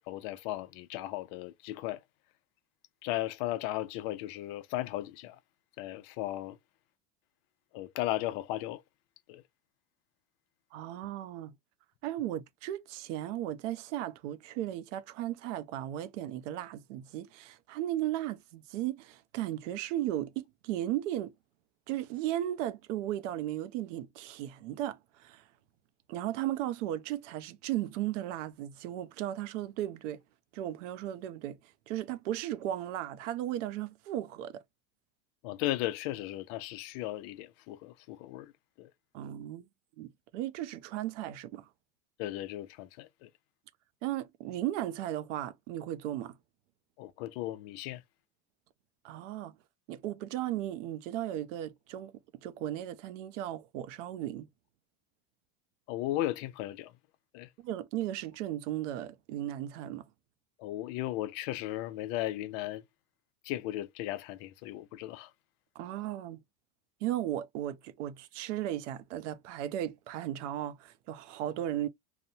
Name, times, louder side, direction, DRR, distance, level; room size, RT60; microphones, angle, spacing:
voice 1, 0.1-2.0 3.0-5.4 5.8-6.6 7.7-8.8 9.3-9.4 35.4-38.5 38.8-38.9 42.2-43.3 47.0-48.0 55.9-56.9 57.3-57.5 60.6-62.8 63.4-65.3, left 15 dB, 55° left, 0.4 m, -36 dB
voice 2, 10.7-11.5 12.0-21.3 21.9-25.4 26.1-30.2 30.5-34.6 39.1-39.6 40.0-41.7 44.0-46.4 49.0-49.5 49.9-52.1 52.4-54.5 57.6-60.1 65.8-66.4 67.0-71.9, right 13 dB, 90° right, 0.5 m, -36 dB
2.9 x 2.1 x 2.6 m
supercardioid pair, 140°, 35 cm